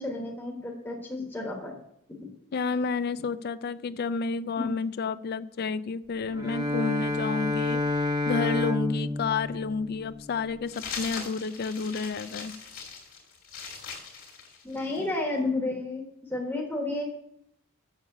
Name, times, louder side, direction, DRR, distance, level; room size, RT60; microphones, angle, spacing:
voice 1, 0.0-1.7 2.2-2.3 4.6-4.7 14.6-17.1, left 2 dB, 10° left, -1 dB, 1.4 m, -31 dB
voice 2, 2.5-12.5, left 4 dB, 45° left, 16 dB, 0.4 m, -30 dB
Bowed string instrument, 6.3-10.4, left 2 dB, 15° right, 0.9 m, -29 dB
sound 1, 10.7-15.1, left 5 dB, 65° left, 2.7 m, -40 dB
7.2 x 7.2 x 6.7 m, 0.74 s
head